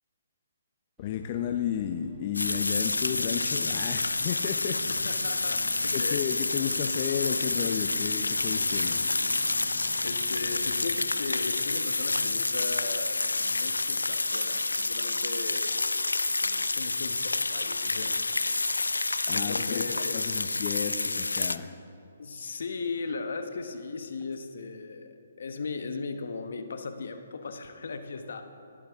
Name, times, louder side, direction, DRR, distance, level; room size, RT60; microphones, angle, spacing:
voice 1, 1.0-4.8 5.9-9.0 19.3-19.8 20.1-21.7, left 9 dB, 40° left, 5 dB, 0.6 m, -32 dB
sound 1, 1.0-10.8, equal, 15° right, 2.6 m, -48 dB
sound 2, 2.3-21.6, left 3 dB, 90° left, 0.4 m, -29 dB
voice 2, 4.9-6.3 10.0-15.9 16.4-18.3 19.3-20.6 22.2-28.4, left 4 dB, 65° left, 7 dB, 1.0 m, -37 dB
19.0 x 8.4 x 3.5 m, 2.5 s
figure-of-eight pair, 140°, 0 cm